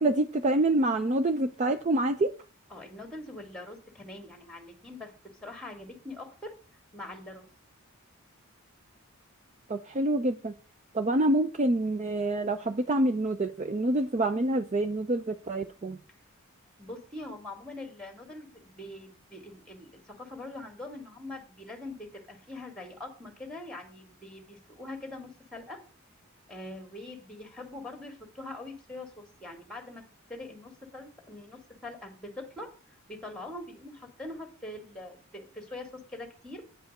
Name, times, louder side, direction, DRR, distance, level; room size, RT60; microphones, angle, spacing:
voice 1, 0.0-2.3 9.7-10.5 10.9-16.0, right 1 dB, 35° right, 8 dB, 0.5 m, -26 dB
voice 2, 2.7-5.1 5.4-6.5 6.9-7.5 16.8-25.8 26.5-32.7 33.1-36.6, left 2 dB, 5° left, 3 dB, 1.9 m, -43 dB
9.1 x 5.1 x 6.5 m, 0.37 s
head